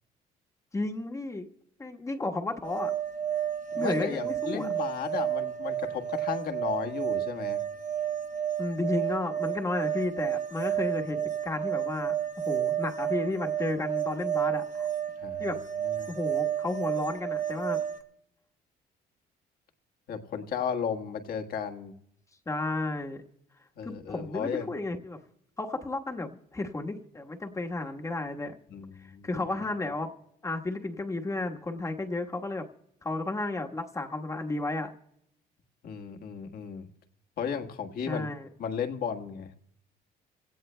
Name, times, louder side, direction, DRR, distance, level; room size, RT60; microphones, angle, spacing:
voice 1, 0.7-1.5 1.8-2.9 3.8-4.7 8.6-14.9 15.4-15.6 16.1-17.8 22.5-23.2 23.8-25.2 25.6-28.6 29.0-30.1 30.4-32.7 33.0-34.9 38.1-38.5, left 2 dB, 20° left, 3 dB, 1.3 m, -33 dB
sound 1, 2.6-18.0, right 9 dB, 50° right, 1.0 m, -31 dB
voice 2, 3.8-7.6 15.2-16.1 20.1-21.9 23.8-24.7 28.7-29.3 35.8-36.9 37.4-38.3 38.6-39.7, left 7 dB, 60° left, 5 dB, 1.4 m, -34 dB
25.5 x 17.0 x 2.2 m, 0.77 s
cardioid pair, 110°, 17 cm